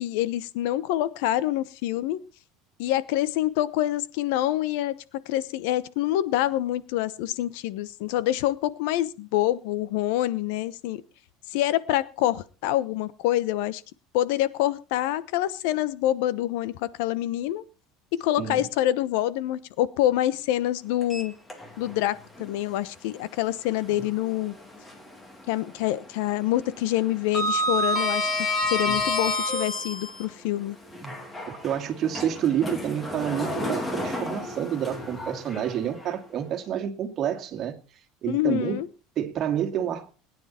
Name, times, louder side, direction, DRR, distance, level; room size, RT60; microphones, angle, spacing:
voice 1, 0.0-2.2 2.8-5.0 5.3-11.0 11.5-13.8 14.1-17.6 18.1-21.3 21.8-24.5 25.5-28.3 28.7-30.8 38.2-38.9, left 14 dB, 75° left, 1.0 m, -26 dB
Sliding door, 21.0-22.0 22.4-22.5 24.2-25.2 25.5-25.9 26.1-30.2 30.9-36.1, left 1 dB, 10° left, 2.3 m, -30 dB
voice 2, 31.5-37.8 38.2-38.8 39.2-40.1, right 9 dB, 35° right, 2.3 m, -29 dB
20.5 x 10.0 x 4.4 m
cardioid pair, 155°, 0 cm